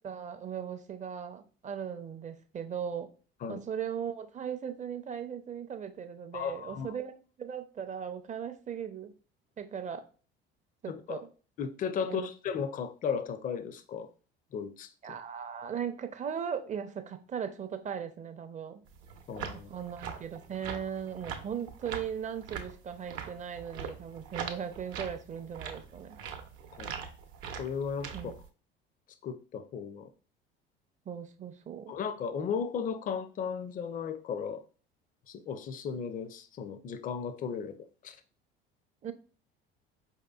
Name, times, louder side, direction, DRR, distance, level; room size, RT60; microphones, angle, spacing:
voice 1, 0.0-3.1 3.5-7.1 7.4-9.1 9.6-10.0 11.1-11.3 12.0-12.3 15.0-18.8 19.5-26.2 28.1-28.3 31.1-32.0 39.0-39.1, right 8 dB, 25° right, 0.5 m, -38 dB
voice 2, 6.3-7.0 10.9-11.2 11.6-14.1 14.5-14.9 19.3-19.7 26.7-27.0 27.6-28.3 29.2-30.1 31.9-34.6 35.3-37.8 38.0-38.2, left 6 dB, 30° left, 0.4 m, -35 dB
sound 1, 18.9-28.5, right 7 dB, 60° right, 0.7 m, -42 dB
4.6 x 2.8 x 2.3 m
hypercardioid pair, 65°, 30 cm